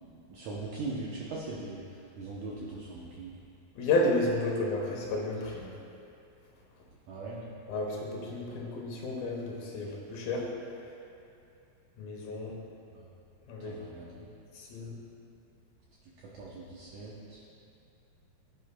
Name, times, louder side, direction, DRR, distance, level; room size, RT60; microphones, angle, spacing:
voice 1, 0.0-3.4 7.1-7.5 12.9-13.1 13.6-14.3 16.2-17.4, right 3 dB, 80° right, -6 dB, 1.7 m, -40 dB
voice 2, 3.8-5.7 7.7-10.5 12.0-12.5 13.5-13.7 14.5-14.9, left 2 dB, 70° left, -2 dB, 2.8 m, -31 dB
14.5 x 8.1 x 2.2 m, 2.6 s
omnidirectional pair, 4.7 m